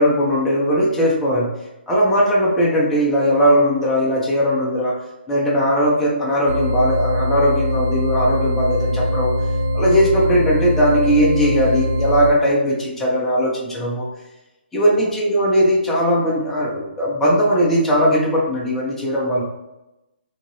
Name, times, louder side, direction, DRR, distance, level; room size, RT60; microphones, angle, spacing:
voice 1, 0.0-1.5 1.9-4.9 5.3-9.3 9.7-14.1 14.7-19.4, equal, 5° left, -6 dB, 0.6 m, -18 dB
sound 1, 6.5-12.3, left 1 dB, 85° right, 1.2 m, -22 dB
2.8 x 2.5 x 3.0 m, 0.96 s
hypercardioid pair, 150°, 6 cm